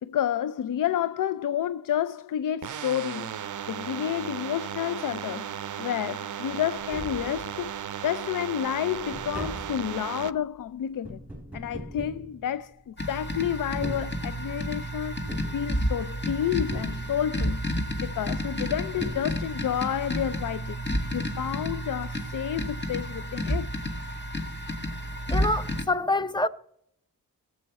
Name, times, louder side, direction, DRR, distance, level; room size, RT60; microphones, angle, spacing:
voice 1, 0.0-7.7 8.0-11.2 11.5-20.8 21.1-23.7, left 10 dB, 65° left, 0.5 m, -30 dB
sound 1, 2.6-10.3, right 10 dB, 60° right, 0.5 m, -36 dB
Tap, 6.8-7.9 8.3-13.1 13.7-14.7 15.3-16.2 16.7-17.5 18.6-18.7 19.0-19.8 20.1-20.2, right 1 dB, 5° right, 2.9 m, -41 dB
sound 2, 13.0-25.8, equal, 30° left, 1.9 m, -31 dB
voice 2, 25.3-26.5, left 2 dB, 15° left, 0.6 m, -26 dB
17.5 x 7.7 x 4.2 m
wide cardioid pair, 90°, 35 cm